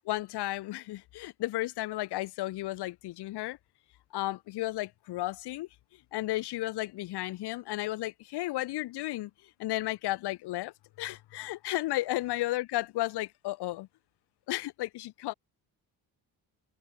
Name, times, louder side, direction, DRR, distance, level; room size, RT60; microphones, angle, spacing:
voice 1, 0.1-3.6 4.1-5.7 6.1-9.3 9.6-13.9 14.5-15.3, left 17 dB, 85° left, 1.0 m, -33 dB
cardioid pair, 175°, 39 cm